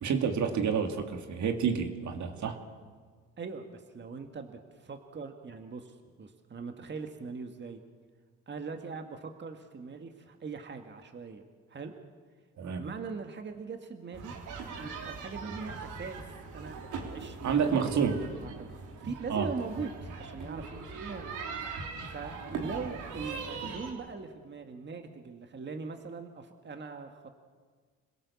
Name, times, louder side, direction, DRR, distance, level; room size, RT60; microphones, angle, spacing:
voice 1, 0.0-2.6 12.6-12.8 17.4-18.2 19.3-19.5, right 6 dB, 70° right, 5 dB, 2.5 m, -29 dB
voice 2, 3.4-7.8 8.5-11.4 11.7-11.9 12.8-14.3 14.8-16.2 16.5-16.8 17.0-17.9 18.4-19.9 20.2-21.3 22.1-27.3, right 4 dB, 35° right, 5 dB, 1.9 m, -41 dB
sound 1, 14.1-23.9, right 4 dB, 85° right, 3.6 m, -41 dB
26.5 x 17.0 x 7.1 m, 1.5 s
cardioid pair, 90°, 30 cm